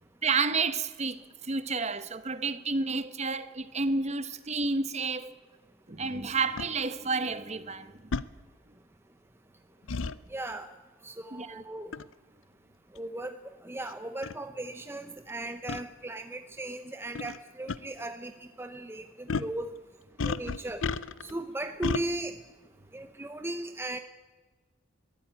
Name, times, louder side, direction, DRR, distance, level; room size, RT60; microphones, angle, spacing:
voice 1, 0.2-1.2 1.5-5.3 5.9-7.9 11.3-11.6 20.4-20.5, right 4 dB, 35° right, 1.1 m, -30 dB
sound 1, 6.6-6.7 8.1-8.3 9.9-10.2 11.9-12.1 13.0-13.1 13.9-14.0 14.2-14.4 15.7-15.8 17.2-17.4 17.7-17.8 19.3-19.6 20.2-21.3 21.8-22.0, left 4 dB, 65° left, 0.6 m, -32 dB
voice 2, 10.3-10.7 11.0-11.9 12.9-13.4 13.6-19.8 20.2-20.8 21.2-22.4 22.9-24.0, right 1 dB, 10° right, 0.7 m, -37 dB
22.0 x 13.5 x 9.4 m
head